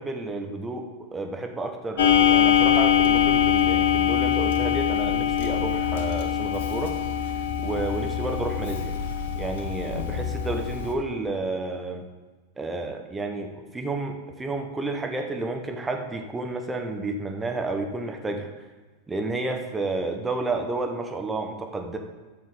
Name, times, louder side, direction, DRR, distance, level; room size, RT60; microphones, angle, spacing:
voice 1, 0.0-7.0 7.6-8.9 9.3-12.1 12.6-18.5 19.1-22.0, right 2 dB, 10° right, 3 dB, 1.0 m, -31 dB
Clock, 2.0-10.9, left 9 dB, 55° left, 1.0 m, -23 dB
11.0 x 6.8 x 4.1 m, 1.3 s
figure-of-eight pair, 90°, 0 cm